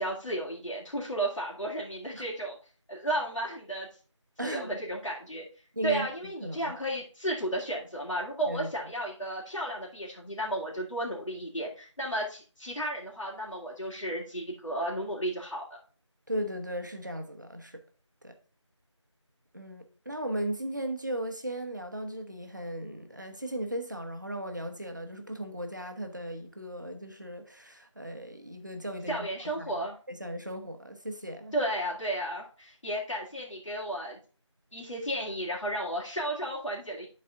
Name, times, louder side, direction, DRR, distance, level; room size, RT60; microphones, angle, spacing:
voice 1, 0.0-2.6 2.9-3.9 4.4-5.5 5.8-15.6 29.1-30.0 31.5-34.2 34.7-37.1, right 1 dB, 75° left, 2.4 m, -33 dB
voice 2, 4.4-4.7 5.8-6.7 8.4-8.7 16.3-17.8 18.2-18.4 19.5-29.3 29.6-29.7 30.1-31.5, right 1 dB, 40° right, 0.9 m, -36 dB
9.9 x 4.2 x 3.5 m
figure-of-eight pair, 175°, 16 cm